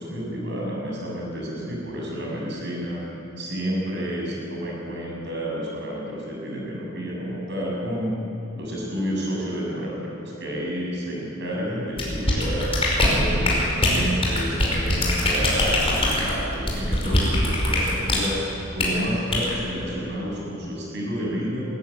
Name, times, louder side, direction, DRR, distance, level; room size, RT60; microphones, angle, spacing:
voice 1, 0.0-3.0 3.4-8.2 8.6-12.7 13.1-21.6, equal, 60° right, -3 dB, 7.3 m, -30 dB
sound 1, 12.0-18.3 18.8-19.0 19.3-19.5, left 1 dB, 30° left, 5.2 m, -22 dB
23.0 x 14.5 x 9.6 m, 3.0 s
head